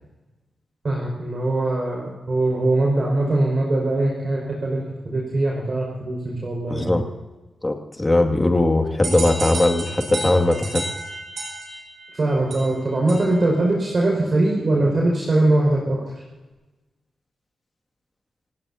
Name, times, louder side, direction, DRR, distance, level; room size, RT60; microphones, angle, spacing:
voice 1, 0.8-6.9 12.1-16.0, right 2 dB, 45° right, -2 dB, 5.7 m, -21 dB
voice 2, 6.7-7.0 7.6-10.8, left 2 dB, 20° left, 3 dB, 2.4 m, -19 dB
sound 1, 9.0-13.5, right 2 dB, 70° right, 6.6 m, -32 dB
29.0 x 17.0 x 2.9 m, 1.2 s
cardioid pair, 90°, 0 cm